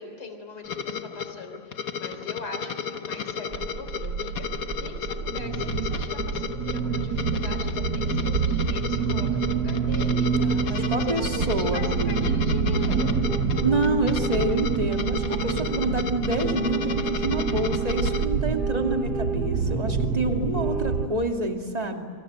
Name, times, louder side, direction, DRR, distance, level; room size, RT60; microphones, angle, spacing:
voice 1, 0.0-13.2, left 3 dB, 80° left, 6 dB, 4.5 m, -40 dB
sound 1, 0.6-18.3, left 7 dB, 50° left, 1.2 m, -33 dB
sound 2, 3.5-21.1, right 5 dB, 55° right, 1.7 m, -27 dB
voice 2, 10.4-12.3 13.6-22.0, right 2 dB, 20° right, 3 dB, 2.4 m, -28 dB
28.0 x 25.5 x 7.8 m, 2.2 s
omnidirectional pair, 2.4 m